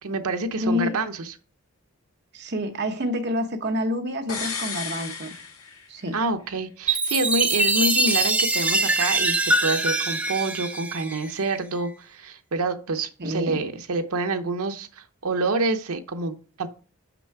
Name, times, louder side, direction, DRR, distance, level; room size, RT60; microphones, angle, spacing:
voice 1, 0.0-1.2 6.1-16.7, right 3 dB, 80° right, 7 dB, 0.8 m, -27 dB
voice 2, 0.6-1.0 2.3-5.3 5.9-6.2 13.2-13.6, left 1 dB, 50° right, 5 dB, 0.9 m, -28 dB
sound 1, 4.3-6.2 6.5-6.6, left 5 dB, 70° left, 1.6 m, -33 dB
Chime, 6.9-11.6, right 2 dB, 5° right, 0.3 m, -23 dB
6.0 x 5.6 x 4.7 m, 0.39 s
head